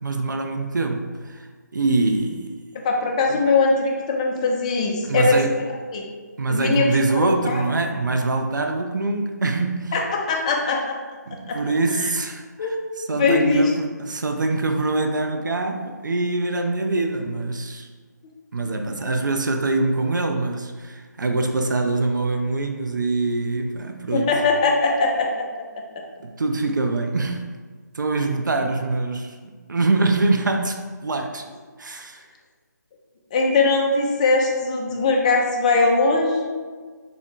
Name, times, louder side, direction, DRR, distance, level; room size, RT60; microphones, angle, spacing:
voice 1, 0.0-1.5 1.7-2.6 3.3-3.4 5.0-5.6 6.4-10.0 11.3-17.9 18.5-24.4 26.2-27.5 27.9-29.4 29.7-31.4 31.8-32.3, right 2 dB, 80° right, 4 dB, 0.5 m, -24 dB
voice 2, 2.7-6.1 6.5-6.9 7.4-7.6 9.9-10.8 11.5-11.6 11.9-12.0 12.6-12.7 13.1-13.7 24.1-25.5 28.2-28.3 33.3-36.5, left 3 dB, 20° left, 0 dB, 0.4 m, -21 dB
3.4 x 2.5 x 3.7 m, 1.5 s
figure-of-eight pair, 155°, 10 cm